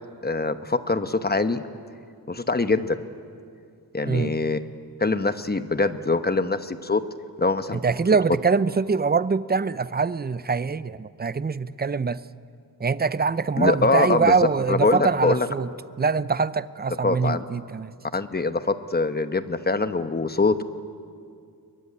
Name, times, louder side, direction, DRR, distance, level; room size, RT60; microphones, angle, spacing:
voice 1, 0.2-1.6 2.3-3.0 3.9-4.6 5.0-7.0 7.4-7.8 13.6-14.3 14.7-15.5 17.0-17.4 18.1-20.6, left 3 dB, 25° left, 10 dB, 1.0 m, -23 dB
voice 2, 4.0-4.3 7.7-12.2 12.8-15.7 16.0-17.9, right 5 dB, 25° right, 16 dB, 0.6 m, -24 dB
23.5 x 21.5 x 9.8 m, 2.3 s
wide cardioid pair, 115°, 37 cm